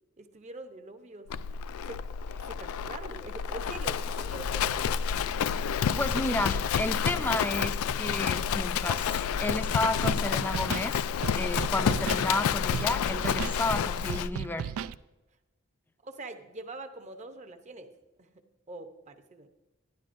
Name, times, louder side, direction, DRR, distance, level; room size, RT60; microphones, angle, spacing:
voice 1, 0.2-1.3 1.9-2.0 2.5-4.8 16.0-17.9 18.2-18.3 18.7-19.5, right 2 dB, 35° right, 7 dB, 0.7 m, -44 dB
Livestock farm animals working animals, 1.3-14.3, left 7 dB, 90° left, 0.3 m, -29 dB
voice 2, 6.0-10.9 11.4-14.7, left 2 dB, 10° left, 9 dB, 0.4 m, -32 dB
Scratching (performance technique), 10.0-10.2 10.5-10.9 11.2-12.3 12.7-12.9 13.2-13.6 14.1-15.0, right 7 dB, 85° right, 0.3 m, -35 dB
11.5 x 11.5 x 2.6 m, 1.1 s
head